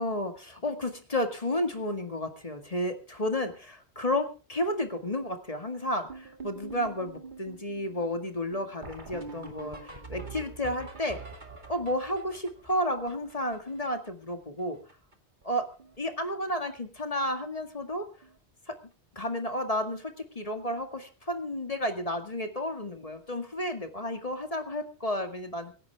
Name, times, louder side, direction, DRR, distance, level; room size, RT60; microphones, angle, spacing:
voice 1, 0.0-11.2 11.7-14.8 15.4-15.7 16.0-18.1 18.7-18.8 19.2-25.7, left 1 dB, 35° left, 6 dB, 2.1 m, -32 dB
sound 1, 6.1-14.3 14.6-14.7 14.9-15.1 15.4-16.0 16.3-16.5 17.3-17.4 17.8-17.9 18.2-18.4 20.6-20.7 23.1-23.2, right 3 dB, 45° right, 2.3 m, -45 dB
25.5 x 10.5 x 3.5 m, 0.35 s
omnidirectional pair, 1.1 m